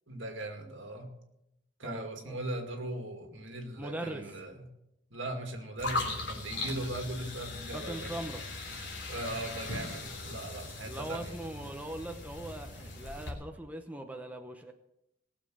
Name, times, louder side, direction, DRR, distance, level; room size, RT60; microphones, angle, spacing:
voice 1, 0.1-1.1 1.8-4.7 5.1-8.1 9.1-11.4, right 1 dB, 75° right, 4 dB, 2.4 m, -39 dB
voice 2, 1.8-2.4 3.8-4.3 7.7-8.4 10.9-14.7, right 1 dB, 10° right, 4 dB, 0.8 m, -40 dB
sound 1, 5.8-13.3, left 2 dB, 65° left, 3.3 m, -39 dB
18.5 x 7.2 x 6.4 m, 0.84 s
head